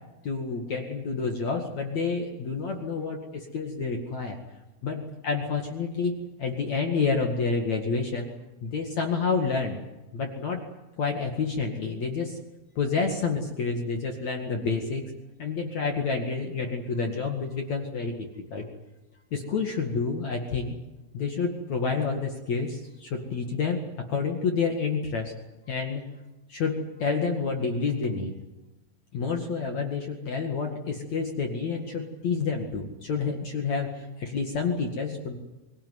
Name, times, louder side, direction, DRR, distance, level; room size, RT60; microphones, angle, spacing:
voice 1, 0.2-4.4 4.8-8.3 8.6-9.8 10.1-10.6 11.0-12.4 12.8-15.0 15.4-18.6 19.3-20.8 21.1-23.8 24.1-25.3 25.7-26.0 26.5-28.4 29.1-35.4, left 4 dB, 50° left, 3 dB, 2.4 m, -29 dB
24.0 x 17.5 x 9.5 m, 1.1 s
omnidirectional pair, 5.8 m